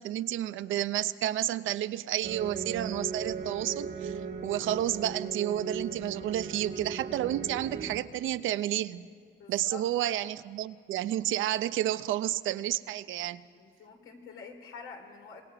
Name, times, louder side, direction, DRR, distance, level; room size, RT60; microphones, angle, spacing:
voice 1, 0.0-4.1 4.4-9.0 9.5-13.4, right 13 dB, 80° right, 14 dB, 0.6 m, -31 dB
sound 1, 2.2-8.0, right 5 dB, 55° right, 1.5 m, -37 dB
voice 2, 9.4-9.8 13.5-15.4, left 5 dB, 85° left, 2 dB, 3.2 m, -47 dB
26.0 x 20.5 x 4.9 m, 2.2 s
cardioid pair, 90°, 20 cm